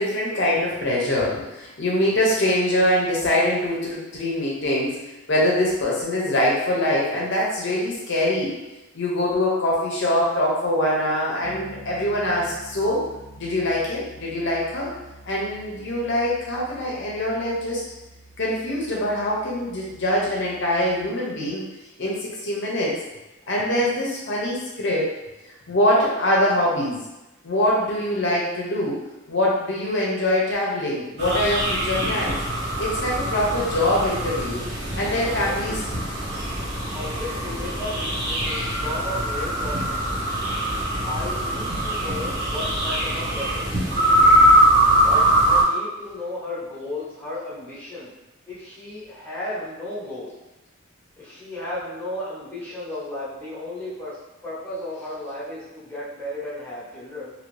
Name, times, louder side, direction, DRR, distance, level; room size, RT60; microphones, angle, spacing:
voice 1, 0.0-5.0 5.3-8.5 8.9-13.0 13.4-14.9 15.3-17.8 18.4-21.6 22.0-23.0 23.5-25.1 25.7-27.0 27.4-29.0 29.3-32.4 32.8-34.6 35.0-35.8, left 1 dB, 60° left, -4 dB, 0.6 m, -23 dB
Piano, 11.4-21.0, right 1 dB, 20° right, 0.5 m, -47 dB
sound 1, 31.2-45.6, right 1 dB, 50° right, 1.2 m, -22 dB
voice 2, 35.2-35.8 36.9-40.2 41.0-44.4 45.0-48.1 48.5-50.4 51.2-57.3, left 1 dB, 10° left, -9 dB, 0.9 m, -34 dB
2.8 x 2.6 x 3.1 m, 1.0 s
head